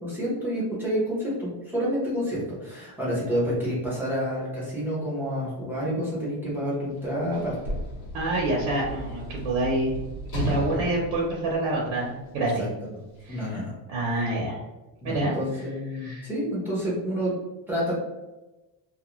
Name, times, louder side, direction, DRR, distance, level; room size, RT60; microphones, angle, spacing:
voice 1, 0.0-7.6 10.7-10.9 12.4-12.9 13.3-13.7 14.1-14.2 15.0-17.3 17.7-17.9, equal, 5° right, -7 dB, 0.6 m, -29 dB
Sliding door / Slam, 6.9-12.3 13.2-13.3, equal, 70° left, 1.1 m, -35 dB
voice 2, 8.1-9.9 10.3-12.7 13.2-13.5 13.9-14.6 15.0-15.3 15.9-16.3, right 2 dB, 65° right, -3 dB, 0.7 m, -27 dB
2.4 x 2.2 x 2.9 m, 1.1 s
cardioid pair, 160°, 50 cm